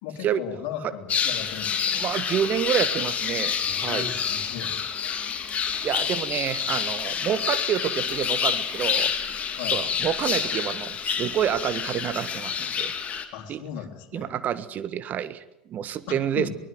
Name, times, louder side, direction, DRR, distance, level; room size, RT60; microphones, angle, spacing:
voice 1, 0.0-2.0 3.6-4.8 5.2-5.4 9.5-9.8 13.3-14.3 16.1-16.5, left 9 dB, 55° left, 5 dB, 3.7 m, -37 dB
sound 1, 1.1-13.3, left 7 dB, 30° left, 3.0 m, -28 dB
voice 2, 2.0-3.6 3.8-4.1 5.8-9.1 9.7-12.9 13.5-13.6 14.1-15.4 15.7-16.5, right 9 dB, 40° right, 14 dB, 1.6 m, -28 dB
23.0 x 20.0 x 7.9 m, 0.87 s
figure-of-eight pair, 75°, 4 cm